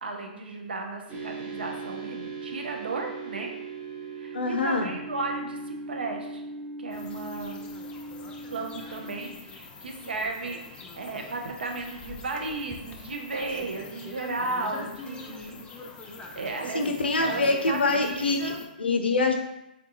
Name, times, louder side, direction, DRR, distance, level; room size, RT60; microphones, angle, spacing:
voice 1, 0.0-3.5 4.1-6.4 6.8-7.6 8.5-15.7 16.3-16.8 17.2-18.6, right 3 dB, 80° right, 2 dB, 0.6 m, -34 dB
sound 1, 1.1-9.4, right 3 dB, 30° right, 0.8 m, -39 dB
voice 2, 4.3-4.9 14.8-14.9 16.7-18.5 18.8-19.4, left 3 dB, 90° left, 4 dB, 0.5 m, -25 dB
sound 2, 6.9-18.7, left 3 dB, 15° left, 0.4 m, -44 dB
3.6 x 2.3 x 2.8 m, 0.88 s
hypercardioid pair, 125°, 5 cm